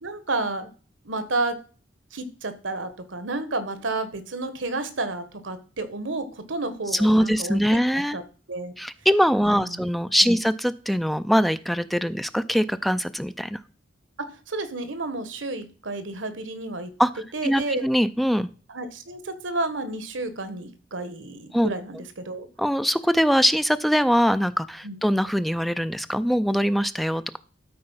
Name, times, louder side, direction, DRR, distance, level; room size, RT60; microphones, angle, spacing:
voice 1, 0.0-0.7 1.0-1.6 2.1-7.6 8.1-8.2 8.5-8.7 9.4-9.9 10.2-10.4 14.2-16.9 17.3-17.9 18.7-22.5 24.8-24.9, right 2 dB, 85° right, 11 dB, 1.2 m, -31 dB
voice 2, 6.9-8.2 8.8-13.6 17.0-17.1 17.4-18.5 21.5-21.7 22.6-27.4, equal, ahead, 13 dB, 0.4 m, -22 dB
12.5 x 4.3 x 5.6 m, 0.39 s
head